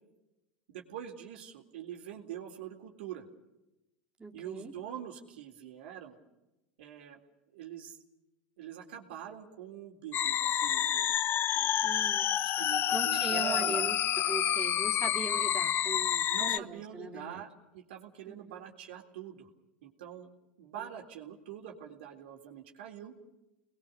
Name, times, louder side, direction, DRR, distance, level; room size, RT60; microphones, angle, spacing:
voice 1, 0.7-3.2 4.3-6.2 6.8-7.2 7.5-8.0 8.6-11.1 11.5-11.8 12.6-13.9 16.3-19.5 19.8-20.3 20.6-23.2, right 9 dB, 80° right, 2 dB, 3.6 m, -44 dB
voice 2, 4.2-4.7 11.8-12.3 12.9-17.4 18.3-18.6, right 4 dB, 15° right, -1 dB, 3.5 m, -40 dB
sound 1, 10.1-16.6, left 10 dB, 40° left, 0.8 m, -29 dB
29.0 x 21.0 x 6.9 m, 0.97 s
hypercardioid pair, 100°, 6 cm